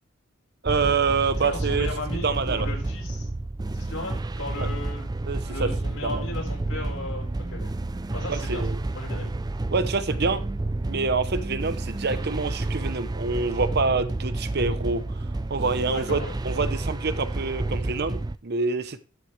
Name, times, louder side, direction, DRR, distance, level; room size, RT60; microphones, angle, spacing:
voice 1, 0.6-1.9 2.2-2.7 4.6-4.7 5.3-5.7 6.0-6.2 8.3-8.8 9.7-10.4 10.8-19.0, right 4 dB, 55° right, 0.8 m, -27 dB
sound 1, 0.7-18.4, right 2 dB, 20° right, 0.4 m, -30 dB
voice 2, 1.4-3.3 3.7-5.1 5.4-7.7 8.1-8.6 8.9-9.3 15.9-16.3, left 2 dB, 85° left, 4.8 m, -36 dB
12.5 x 7.1 x 3.3 m
head